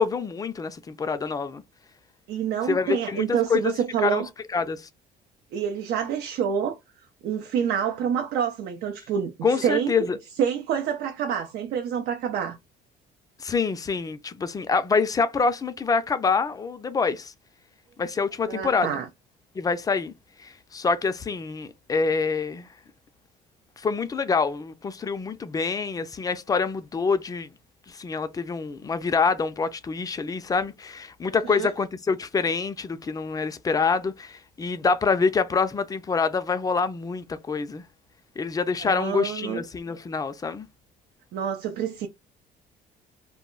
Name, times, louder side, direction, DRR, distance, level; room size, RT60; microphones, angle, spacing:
voice 1, 0.0-1.6 2.7-3.7 4.0-4.2 4.5-4.9 9.4-10.2 13.4-17.3 18.0-19.0 19.6-20.1 20.4-22.7 23.8-27.5 27.9-37.8 38.4-40.7, left 5 dB, 20° left, 0.3 m, -26 dB
voice 2, 2.3-4.3 5.5-6.8 7.2-9.9 10.4-12.6 18.4-19.1 31.3-31.7 38.8-39.6 41.3-42.1, right 8 dB, 75° right, 0.5 m, -27 dB
2.2 x 2.0 x 3.7 m
cardioid pair, 110°, 17 cm